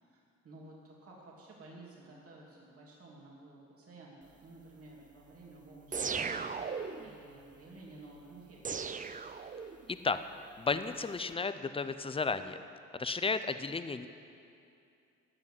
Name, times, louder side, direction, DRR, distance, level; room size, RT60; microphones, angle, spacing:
voice 1, 0.0-6.4 7.0-8.9, right 2 dB, 50° right, -4 dB, 2.8 m, -53 dB
sound 1, 5.9-7.2 8.6-9.9, right 5 dB, 25° right, 0.6 m, -37 dB
voice 2, 9.9-10.2 10.6-12.6 12.9-14.1, left 4 dB, 20° left, 11 dB, 0.6 m, -33 dB
12.5 x 7.3 x 9.6 m, 2.6 s
cardioid pair, 90°, 30 cm